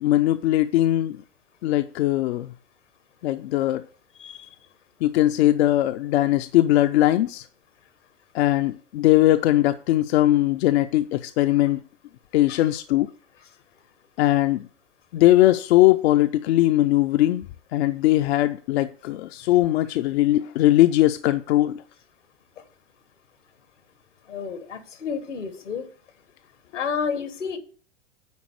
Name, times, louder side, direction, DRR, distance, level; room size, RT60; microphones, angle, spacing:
voice 1, 0.0-1.2 1.6-2.5 3.2-3.8 5.0-7.4 8.3-11.8 12.3-13.1 14.2-14.7 15.1-17.5 17.7-21.8, left 15 dB, 65° left, 0.6 m, -20 dB
voice 2, 24.3-25.9 26.7-27.6, left 6 dB, 85° left, 1.6 m, -30 dB
9.6 x 4.2 x 6.5 m
hypercardioid pair, 95°, 35 cm